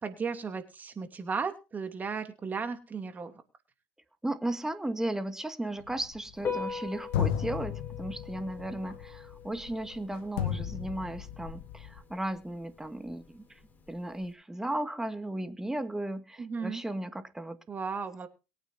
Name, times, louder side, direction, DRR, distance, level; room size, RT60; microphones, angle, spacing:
voice 1, 0.0-3.3 16.4-16.8 17.7-18.3, right 5 dB, 30° right, 7 dB, 2.8 m, -35 dB
voice 2, 4.2-13.6 13.9-17.6, right 1 dB, 10° right, 10 dB, 2.0 m, -35 dB
sound 1, 5.8-6.8 7.1-12.0, left 10 dB, 85° left, 1.6 m, -35 dB
Piano, 6.3-14.3, left 5 dB, 30° left, 5.0 m, -43 dB
22.5 x 9.3 x 2.7 m, 0.30 s
supercardioid pair, 95°, 6 cm